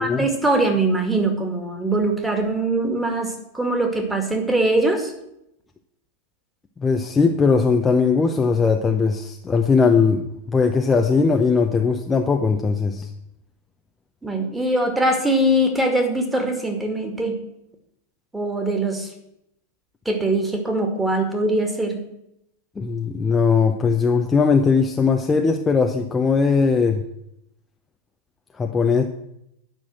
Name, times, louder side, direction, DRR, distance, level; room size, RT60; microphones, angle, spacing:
voice 1, 0.0-5.1 14.2-17.4 18.3-19.1 20.1-22.0, right 1 dB, 5° right, 3 dB, 2.1 m, -22 dB
voice 2, 6.8-13.1 22.8-27.0 28.6-29.0, left 5 dB, 15° left, 4 dB, 0.8 m, -19 dB
10.0 x 6.1 x 7.7 m, 0.80 s
figure-of-eight pair, 90°, 0 cm